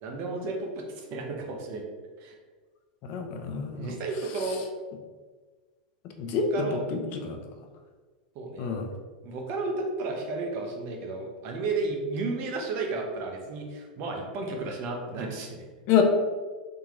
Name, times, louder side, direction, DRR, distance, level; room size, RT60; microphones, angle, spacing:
voice 1, 0.0-1.8 2.2-2.3 3.7-4.6 6.2-6.8 8.3-8.7 9.2-15.6, right 3 dB, 50° right, 1 dB, 0.9 m, -33 dB
voice 2, 3.0-3.9 6.2-7.4 8.6-8.8 15.9-16.0, left 6 dB, 50° left, 4 dB, 0.7 m, -27 dB
3.8 x 2.9 x 3.7 m, 1.4 s
hypercardioid pair, 110°, 5 cm